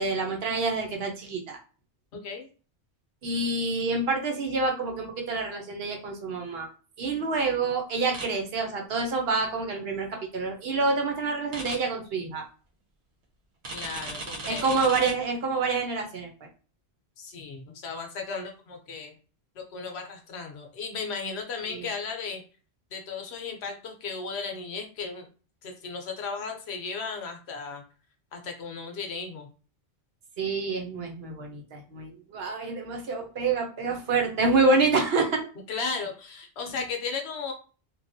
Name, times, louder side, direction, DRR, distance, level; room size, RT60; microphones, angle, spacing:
voice 1, 0.0-1.6 3.2-6.7 7.0-12.4 14.5-16.3 21.7-21.8 30.4-35.5, right 3 dB, 65° right, 2 dB, 0.9 m, -27 dB
voice 2, 2.1-2.5 13.7-14.9 17.2-19.1 19.6-22.4 22.9-25.3 25.6-27.8 28.3-29.5 35.7-37.5, left 5 dB, 70° left, 4 dB, 0.9 m, -35 dB
sound 1, 8.1-8.3 11.5-11.8 13.6-15.1, right 2 dB, 85° right, 1.2 m, -36 dB
3.0 x 2.3 x 2.6 m, 0.37 s
omnidirectional pair, 1.1 m